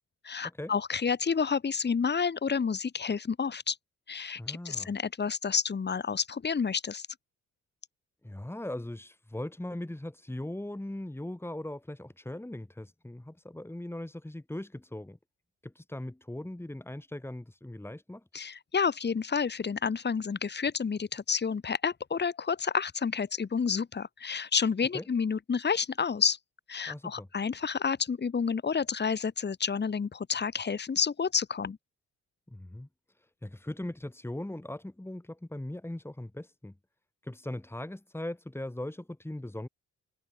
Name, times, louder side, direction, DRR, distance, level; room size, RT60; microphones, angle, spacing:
voice 1, 0.2-3.8 4.1-7.1 18.3-26.4 26.7-31.8, left 6 dB, 35° left, 2.6 m, -30 dB
voice 2, 4.4-4.9 8.2-15.2 15.6-18.2 24.9-25.0 26.9-27.3 32.5-32.9 33.2-36.7 37.2-39.7, left 1 dB, 10° left, 7.2 m, -39 dB
cardioid pair, 95°, 29 cm